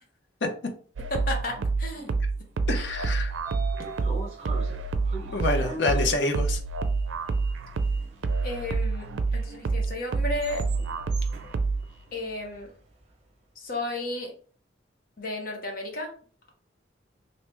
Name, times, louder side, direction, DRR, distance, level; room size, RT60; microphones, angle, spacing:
sound 1, 1.0-12.0, right 4 dB, 90° right, 0.4 m, -28 dB
voice 1, 1.1-2.1 8.4-9.0 9.3-10.6 12.1-12.7 13.6-14.3 15.2-16.1, left 2 dB, 50° left, 1 dB, 0.9 m, -33 dB
voice 2, 2.7-3.3 5.3-6.6, left 3 dB, 70° left, 4 dB, 0.7 m, -27 dB
Sliding door, 2.9-13.0, right 3 dB, 35° right, 0.8 m, -43 dB
3.3 x 2.7 x 3.1 m, 0.43 s
head